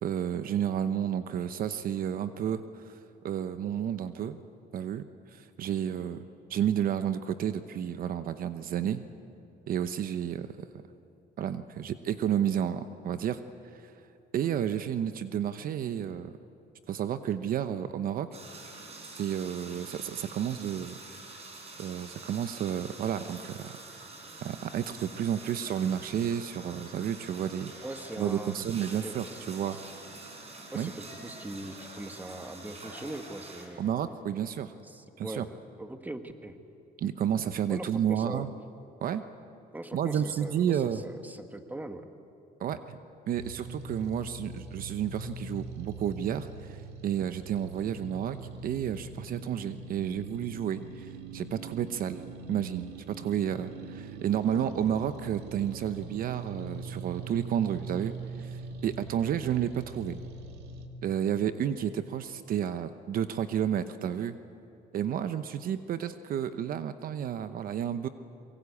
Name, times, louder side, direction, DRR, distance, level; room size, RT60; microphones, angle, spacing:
voice 1, 0.0-3.0 3.2-4.4 4.7-6.2 6.5-9.0 9.7-10.7 11.4-13.4 13.7-13.9 14.3-16.3 16.9-18.3 19.2-21.0 21.8-23.8 24.4-27.7 28.2-29.8 30.7-30.9 33.8-34.7 35.2-35.4 37.0-38.5 39.0-39.2 39.9-41.0 42.6-43.0 43.3-48.4 48.6-52.2 52.5-60.2 61.0-64.4 64.9-68.1, right 9 dB, 60° right, 11 dB, 0.9 m, -31 dB
sound 1, 18.3-33.7, right 3 dB, 40° right, 5.5 m, -46 dB
voice 2, 27.8-29.4 29.7-29.9 30.7-34.1 34.8-35.5 35.8-36.6 37.7-38.5 39.7-42.1, right 1 dB, 10° right, 7 dB, 1.6 m, -41 dB
sound 2, 43.3-60.9, right 3 dB, 80° right, 2.1 m, -42 dB
24.5 x 23.0 x 8.5 m, 2.7 s
cardioid pair, 110°, 17 cm